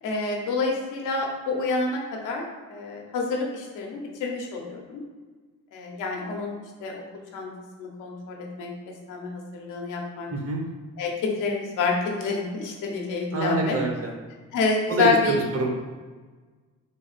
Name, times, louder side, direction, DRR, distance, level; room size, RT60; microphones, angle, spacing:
voice 1, 0.0-2.4 2.7-5.0 5.7-6.9 7.3-7.5 7.8-8.7 9.1-10.3 11.0-13.8 14.5-15.4, left 4 dB, 90° left, 0 dB, 1.0 m, -28 dB
voice 2, 10.3-10.6 13.3-14.1 14.9-15.7, right 3 dB, 50° right, 0 dB, 1.1 m, -26 dB
4.0 x 2.9 x 4.1 m, 1.4 s
cardioid pair, 90°, 30 cm